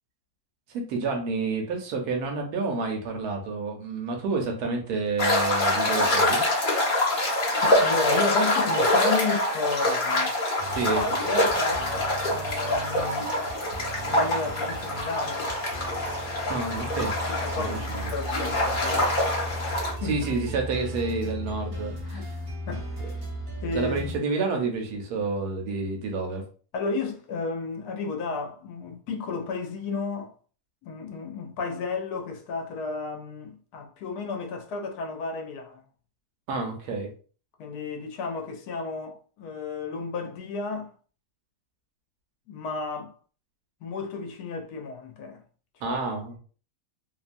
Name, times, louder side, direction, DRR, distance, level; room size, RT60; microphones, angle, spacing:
voice 1, 0.7-6.4 10.7-11.1 16.5-17.2 17.5-17.8 20.0-22.4 23.0-23.1 23.7-26.4 36.5-37.1 45.8-46.4, right 4 dB, 75° right, 1.2 m, -29 dB
sound 1, 5.2-19.9, left 1 dB, 40° left, 0.8 m, -25 dB
voice 2, 7.6-10.4 10.9-11.9 12.3-13.3 14.0-15.5 17.3-19.2 20.0-20.2 22.0-23.3 23.6-24.2 26.7-30.3 30.8-35.8 37.6-40.9 42.5-43.1 43.8-45.4 45.8-46.0, left 4 dB, 75° left, 1.0 m, -33 dB
sound 2, 10.6-24.2, equal, 45° right, 0.8 m, -37 dB
2.9 x 2.2 x 2.5 m
omnidirectional pair, 1.8 m